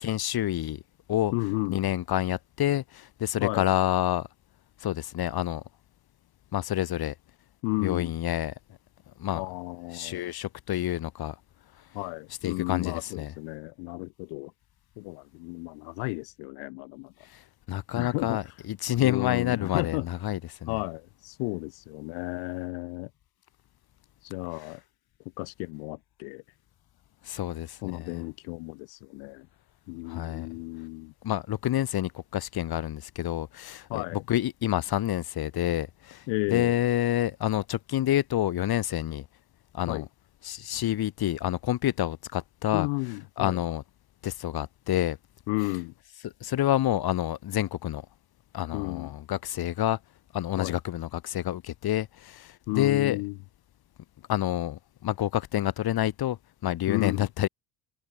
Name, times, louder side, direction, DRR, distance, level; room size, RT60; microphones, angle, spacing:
voice 1, 0.0-0.8 1.1-1.3 1.7-4.3 4.8-5.6 6.5-7.1 7.8-8.5 9.2-9.4 9.9-11.3 12.4-13.3 17.3-17.4 17.7-20.8 27.2-28.2 30.1-30.5 31.2-39.2 39.7-40.0 40.4-42.9 43.4-43.8 44.2-45.2 46.2-48.0 48.5-50.0 50.3-53.2 54.3-57.5, left 12 dB, 60° left, 2.5 m, -28 dB
voice 2, 1.3-1.8 3.4-3.6 7.6-8.1 9.3-10.3 11.9-14.5 15.0-17.1 18.0-18.5 19.0-20.1 20.7-23.1 24.2-24.8 25.4-26.4 27.8-29.5 29.9-31.1 33.9-34.2 36.3-36.8 39.9-40.1 42.7-43.6 45.5-45.9 48.7-49.1 50.6-50.8 52.7-53.4 56.9-57.3, left 32 dB, 85° left, 5.3 m, -33 dB
supercardioid pair, 80°, 42 cm